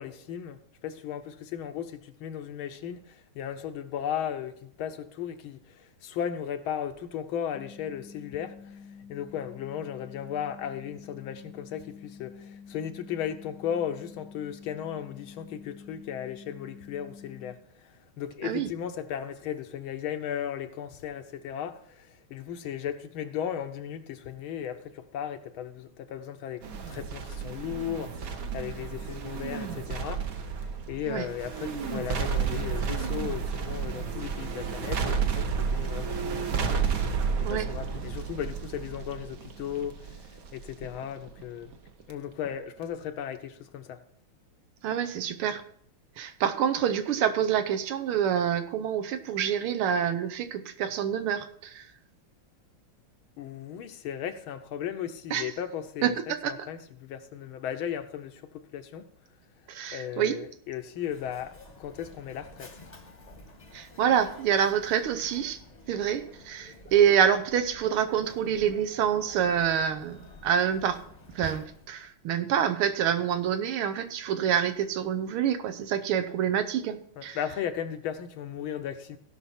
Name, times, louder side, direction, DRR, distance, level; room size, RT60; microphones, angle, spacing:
voice 1, 0.0-8.8 9.1-17.6 18.2-30.5 30.9-36.7 37.4-40.1 40.5-41.7 42.1-44.0 53.4-59.1 59.9-62.7 77.2-79.2, left 9 dB, 75° left, 1.6 m, -36 dB
sound 1, 7.5-17.5, left 6 dB, ahead, 0.9 m, -48 dB
sound 2, 26.6-42.1 42.5-42.6, right 6 dB, 55° right, 1.1 m, -32 dB
voice 2, 44.8-45.6 46.2-51.9 55.3-55.5 56.0-56.5 59.7-60.4 63.7-65.6 65.9-71.0 71.4-77.4, right 9 dB, 85° right, 1.7 m, -27 dB
Mechanisms, 61.0-72.1, left 2 dB, 25° left, 1.0 m, -50 dB
16.5 x 5.9 x 4.3 m
omnidirectional pair, 2.4 m